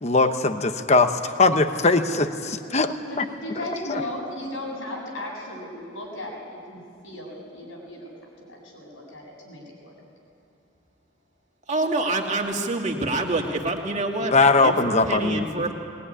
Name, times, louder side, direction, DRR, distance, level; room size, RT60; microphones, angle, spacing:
voice 1, 0.0-3.3 3.6-4.0 14.2-15.7, left 3 dB, 35° left, 8 dB, 1.0 m, -21 dB
voice 2, 3.1-6.8 7.0-8.1 8.4-9.9, left 1 dB, 80° left, -1 dB, 7.2 m, -35 dB
voice 3, 11.7-15.7, right 2 dB, 35° right, 1 dB, 2.4 m, -26 dB
21.5 x 20.0 x 9.9 m, 2.8 s
head